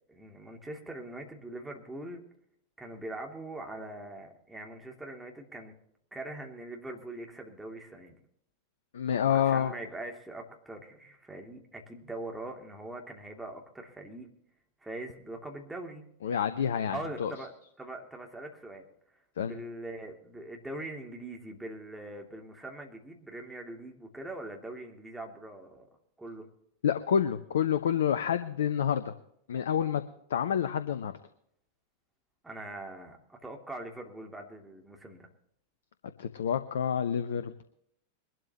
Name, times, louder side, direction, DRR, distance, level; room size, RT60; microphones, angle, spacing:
voice 1, 0.1-2.3 2.8-5.7 6.1-8.2 9.3-14.3 14.8-16.0 16.9-18.9 19.4-25.9 26.2-26.5 32.4-35.3, right 2 dB, 5° right, 1 dB, 2.8 m, -42 dB
voice 2, 8.9-9.7 16.2-17.3 19.4-19.6 26.8-29.1 29.5-30.0 30.3-31.1 36.2-37.6, left 8 dB, 65° left, 12 dB, 0.8 m, -28 dB
22.5 x 12.5 x 3.0 m, 0.71 s
figure-of-eight pair, 90°, 0 cm